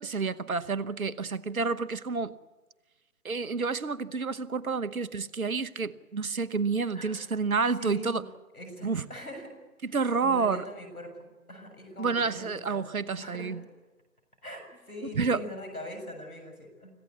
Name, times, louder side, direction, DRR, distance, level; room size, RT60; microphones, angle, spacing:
voice 1, 0.0-2.3 3.2-8.2 8.8-9.1 9.8-10.6 12.0-13.6 15.0-15.4, right 4 dB, 70° right, 1.1 m, -29 dB
voice 2, 6.9-7.3 7.8-8.3 8.5-9.5 9.9-12.8 13.2-13.6 14.4-16.9, equal, 80° left, 7.1 m, -42 dB
25.5 x 15.5 x 8.3 m
figure-of-eight pair, 140°, 43 cm